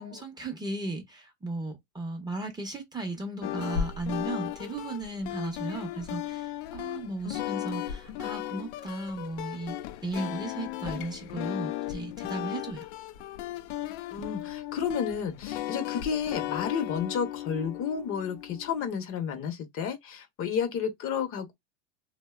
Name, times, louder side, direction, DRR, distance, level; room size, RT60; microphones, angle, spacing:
voice 1, 0.0-9.8 10.0-12.9, right 2 dB, 10° right, 0.6 m, -36 dB
sound 1, 3.4-18.9, left 12 dB, 65° left, 0.5 m, -36 dB
voice 2, 14.1-21.5, left 7 dB, 40° left, 0.7 m, -31 dB
2.6 x 2.0 x 2.3 m
supercardioid pair, 120°, 34 cm